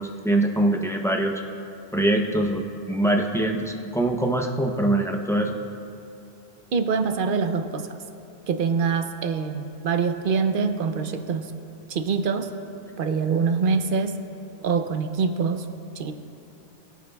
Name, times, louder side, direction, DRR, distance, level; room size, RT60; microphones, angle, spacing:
voice 1, 0.0-1.4 1.9-5.5, right 1 dB, 5° left, 2 dB, 0.5 m, -23 dB
voice 2, 6.7-7.9 8.5-11.5 11.9-12.5 13.0-14.1 14.6-15.6 16.0-16.1, right 5 dB, 60° right, 8 dB, 0.8 m, -24 dB
21.0 x 8.5 x 2.3 m, 2.8 s
omnidirectional pair, 1.1 m